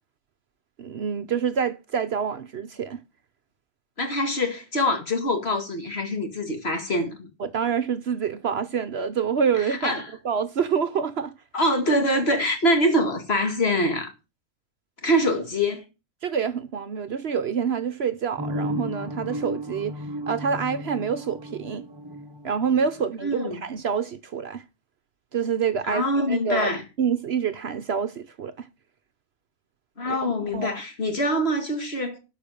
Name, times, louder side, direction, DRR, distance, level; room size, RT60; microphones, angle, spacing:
voice 1, 0.8-3.0 7.4-10.0 10.2-11.3 16.2-21.9 22.4-24.6 25.3-26.7 27.0-28.7 30.1-30.7, right 6 dB, 60° right, 0.9 m, -27 dB
voice 2, 4.0-7.3 9.7-10.0 11.5-14.1 15.0-15.8 23.2-23.6 25.9-26.8 30.0-32.2, equal, 50° left, 2.4 m, -24 dB
sound 1, 18.4-23.1, equal, 20° right, 0.9 m, -34 dB
12.5 x 5.0 x 6.9 m
omnidirectional pair, 1.4 m